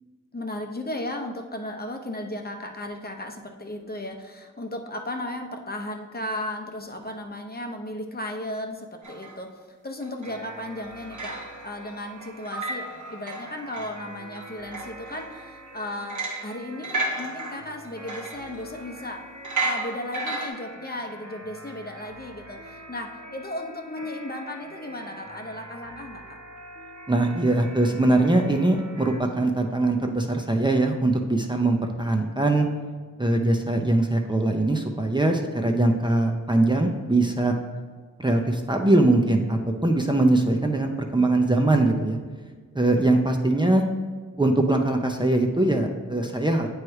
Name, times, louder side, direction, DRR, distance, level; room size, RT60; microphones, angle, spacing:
voice 1, 0.3-26.4, left 1 dB, 30° left, 3 dB, 0.8 m, -35 dB
sound 1, 9.0-9.4 10.0-10.4 10.8-11.8 12.2-14.0 14.3-15.4 16.1-16.6 16.8-19.0 19.4-20.5, right 2 dB, 80° right, 1.4 m, -32 dB
sound 2, 10.2-29.2, right 1 dB, 60° right, 1.4 m, -44 dB
voice 2, 27.1-32.7 33.2-37.5 38.2-42.2 42.7-43.8 44.4-46.7, right 2 dB, 15° right, 2 dB, 0.7 m, -22 dB
8.3 x 3.2 x 4.7 m, 1.5 s
cardioid pair, 45°, 30 cm